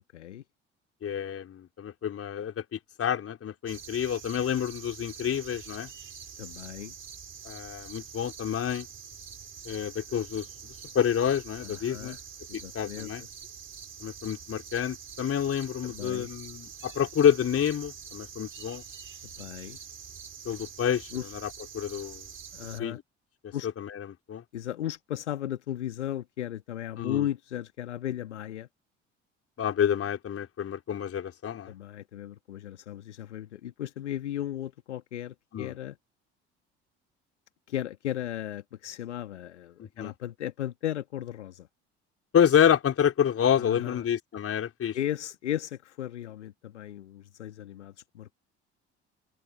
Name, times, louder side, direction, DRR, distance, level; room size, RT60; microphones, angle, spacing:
voice 1, 0.1-0.4 6.4-6.9 11.6-12.2 12.5-13.3 15.8-16.3 19.4-19.8 21.1-21.3 22.5-23.0 23.5-23.7 24.5-28.7 31.7-36.0 37.7-41.7 43.6-44.1 44.9-48.3, left 12 dB, 75° left, 1.8 m, -36 dB
voice 2, 1.0-5.9 7.4-8.9 9.7-10.5 10.9-12.2 12.5-13.2 14.0-18.8 20.5-21.1 21.4-22.2 22.8-23.0 23.8-24.4 27.0-27.3 29.6-31.7 35.5-35.7 39.8-40.1 42.3-45.0, left 9 dB, 40° left, 3.9 m, -28 dB
sound 1, 3.7-22.8, right 7 dB, 35° right, 4.1 m, -45 dB
figure-of-eight pair, 55°, 34 cm